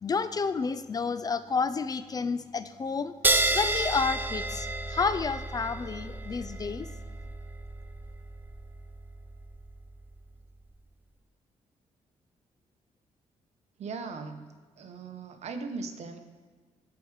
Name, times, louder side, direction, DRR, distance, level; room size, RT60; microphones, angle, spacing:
voice 1, 0.0-3.1 3.5-6.9, left 5 dB, 30° left, 13 dB, 0.4 m, -30 dB
sound 1, 3.2-10.2, right 2 dB, 15° right, 0.7 m, -32 dB
voice 2, 13.8-14.4 14.8-16.2, right 4 dB, 65° right, 7 dB, 1.0 m, -38 dB
14.0 x 4.8 x 4.9 m, 1.5 s
cardioid pair, 120°, 12 cm